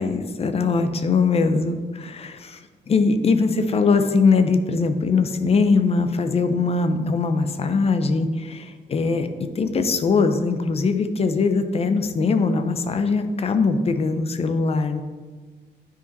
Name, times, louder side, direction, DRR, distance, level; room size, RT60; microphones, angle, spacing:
voice 1, 0.0-2.6 2.9-15.0, left 4 dB, 35° left, 8 dB, 0.6 m, -21 dB
9.6 x 5.1 x 4.0 m, 1.4 s
cardioid pair, 155°, 18 cm